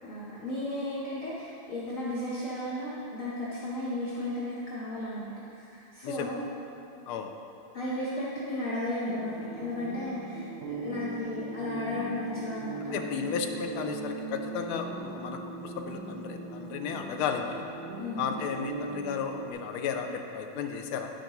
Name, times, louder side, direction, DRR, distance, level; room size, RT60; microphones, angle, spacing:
voice 1, 0.0-5.4 5.7-6.5 7.7-13.0 18.0-18.4, left 1 dB, 50° left, -7 dB, 1.0 m, -34 dB
sound 1, 9.1-19.5, right 3 dB, 75° right, 1.2 m, -39 dB
voice 2, 12.9-17.6 18.2-21.1, left 6 dB, 80° left, 5 dB, 1.4 m, -34 dB
11.5 x 5.1 x 3.0 m, 2.7 s
omnidirectional pair, 2.4 m